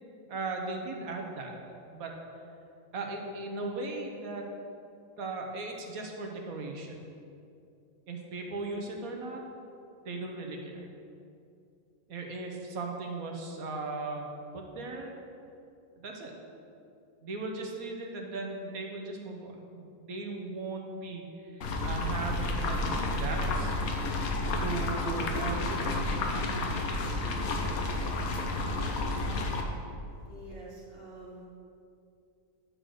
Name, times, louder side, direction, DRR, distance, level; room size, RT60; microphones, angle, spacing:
voice 1, 0.3-1.5 1.9-2.1 2.9-4.5 5.2-7.0 8.1-9.4 10.0-10.9 12.1-14.3 14.5-15.3 16.0-16.3 17.2-23.7 24.6-25.8, right 3 dB, 85° right, 1 dB, 1.5 m, -37 dB
sound 1, 21.6-29.6, left 2 dB, 85° left, 1.4 m, -31 dB
voice 2, 30.2-31.5, right 1 dB, 45° right, -5 dB, 1.6 m, -47 dB
11.0 x 3.9 x 6.4 m, 2.6 s
omnidirectional pair, 1.5 m